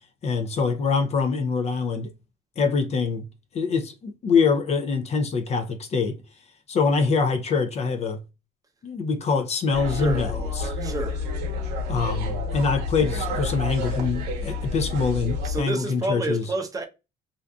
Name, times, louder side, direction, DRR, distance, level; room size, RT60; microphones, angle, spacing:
voice 1, 0.2-2.1 2.6-3.2 3.5-6.2 6.7-8.2 8.8-10.7 11.9-16.4, left 5 dB, 40° left, 0.4 m, -24 dB
sound 1, 9.7-15.6, left 3 dB, 80° right, 0.9 m, -29 dB
voice 2, 9.9-10.3 10.8-11.3 15.4-16.9, right 2 dB, 20° right, 0.5 m, -29 dB
2.5 x 2.4 x 2.2 m
cardioid pair, 110°, 17 cm